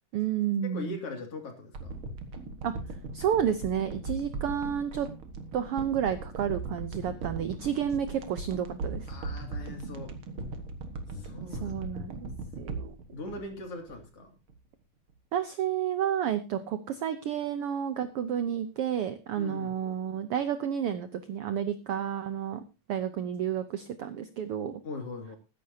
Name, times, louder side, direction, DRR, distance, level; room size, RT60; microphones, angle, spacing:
voice 1, 0.1-1.0 2.6-2.7 3.1-5.1 5.5-9.1 11.5-12.3 12.6-12.9 15.3-22.6 22.9-24.8, right 9 dB, 70° right, 10 dB, 1.4 m, -31 dB
voice 2, 0.7-1.9 9.1-10.1 11.1-11.8 12.1-12.2 13.1-14.3 19.4-19.7 24.8-25.4, left 3 dB, 50° left, 4 dB, 3.3 m, -40 dB
sound 1, 1.7-14.2 14.5-14.6, right 3 dB, 50° right, 2.1 m, -39 dB
20.5 x 10.0 x 2.8 m, 0.27 s
omnidirectional pair, 3.5 m